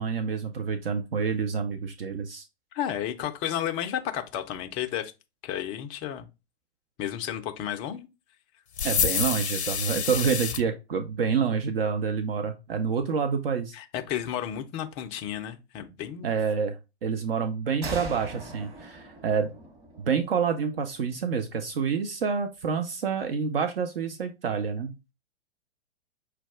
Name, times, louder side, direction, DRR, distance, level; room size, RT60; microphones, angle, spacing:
voice 1, 0.0-2.5 8.8-13.7 16.2-19.5 20.0-24.9, right 6 dB, 60° right, 0.6 m, -28 dB
voice 2, 2.7-5.1 5.4-6.3 7.0-8.1 13.7-16.3, left 10 dB, 20° left, 0.4 m, -32 dB
sound 1, 8.8-10.6, left 7 dB, 75° left, 0.6 m, -27 dB
sound 2, 17.8-21.3, right 2 dB, 30° right, 1.4 m, -41 dB
5.9 x 2.3 x 3.4 m
figure-of-eight pair, 100°, 33 cm